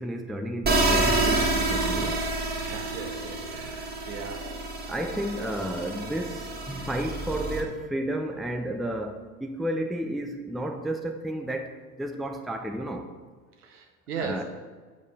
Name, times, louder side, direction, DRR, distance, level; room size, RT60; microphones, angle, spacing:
voice 1, 0.0-2.2 4.9-13.1 14.2-14.4, right 1 dB, ahead, 5 dB, 0.5 m, -32 dB
sound 1, 0.6-7.6, right 2 dB, 20° right, 1.6 m, -28 dB
voice 2, 2.6-4.6 13.6-14.4, right 5 dB, 75° right, 2 dB, 1.6 m, -37 dB
7.9 x 5.2 x 5.4 m, 1.5 s
hypercardioid pair, 80°, 46 cm